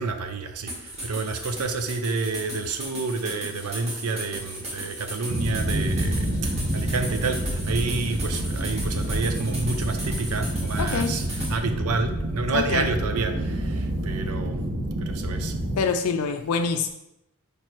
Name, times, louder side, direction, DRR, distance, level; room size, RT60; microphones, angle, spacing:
voice 1, 0.0-6.3 6.7-14.6 15.0-15.5, right 3 dB, 80° right, 7 dB, 0.6 m, -29 dB
sound 1, 0.7-11.5, right 1 dB, 30° right, 1.9 m, -36 dB
sound 2, 5.3-15.8, right 1 dB, 50° right, 1.2 m, -28 dB
voice 2, 10.8-11.2 12.5-12.9 15.8-16.9, left 5 dB, 80° left, 6 dB, 0.4 m, -25 dB
5.2 x 4.5 x 4.4 m, 0.86 s
head